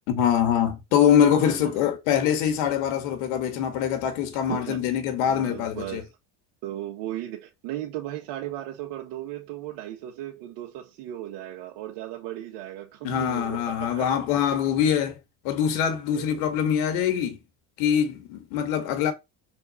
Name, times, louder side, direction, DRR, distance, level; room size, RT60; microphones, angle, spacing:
voice 1, 0.1-6.0 13.0-15.2 15.4-17.4 17.8-19.1, left 9 dB, 85° left, 1.6 m, -24 dB
voice 2, 1.4-1.9 4.5-4.8 5.3-6.1 6.6-14.3 14.5-15.1 15.8-16.5, right 13 dB, 75° right, 1.4 m, -36 dB
6.1 x 4.2 x 4.2 m
supercardioid pair, 100°, 41 cm